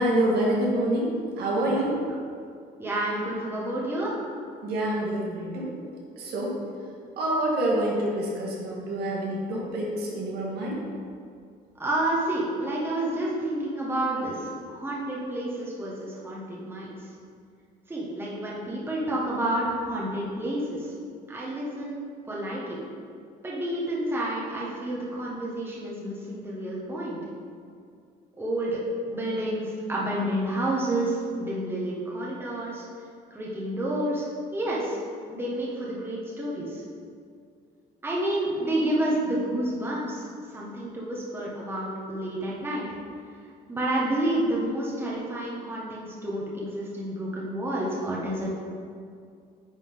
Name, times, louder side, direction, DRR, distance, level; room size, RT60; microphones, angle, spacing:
voice 1, 0.0-2.0 4.6-5.7 6.2-6.6 7.2-10.8, right 1 dB, 70° right, -4 dB, 1.8 m, -26 dB
voice 2, 2.8-4.1 11.8-16.9 17.9-20.9 21.3-22.8 23.4-27.2 28.4-28.8 29.1-32.8 33.3-34.3 34.5-35.0 35.3-36.8 38.0-40.2 40.5-42.9 43.7-48.5, right 1 dB, 15° right, -5 dB, 1.5 m, -29 dB
9.9 x 4.1 x 3.8 m, 2.3 s
cardioid pair, 110°, 17 cm